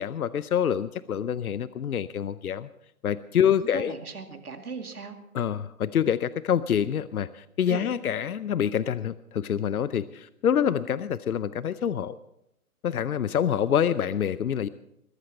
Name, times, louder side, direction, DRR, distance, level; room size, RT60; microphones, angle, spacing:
voice 1, 0.0-2.7 3.0-3.9 5.3-12.2 12.8-14.7, left 9 dB, 80° left, 16 dB, 0.7 m, -26 dB
voice 2, 3.6-5.2 7.7-7.9 13.4-13.6, right 5 dB, 85° right, 6 dB, 2.4 m, -38 dB
21.5 x 12.0 x 4.3 m, 0.82 s
figure-of-eight pair, 140°, 44 cm